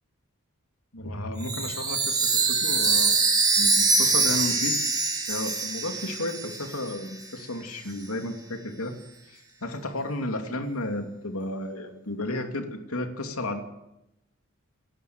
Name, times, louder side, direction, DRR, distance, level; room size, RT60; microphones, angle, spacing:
voice 1, 0.9-3.2 3.6-4.8 5.3-8.9 9.3-13.6, left 1 dB, 75° left, 5 dB, 2.8 m, -33 dB
Chime, 1.4-6.9, right 4 dB, 20° right, 3.2 m, -24 dB
28.0 x 11.5 x 8.1 m, 0.88 s
head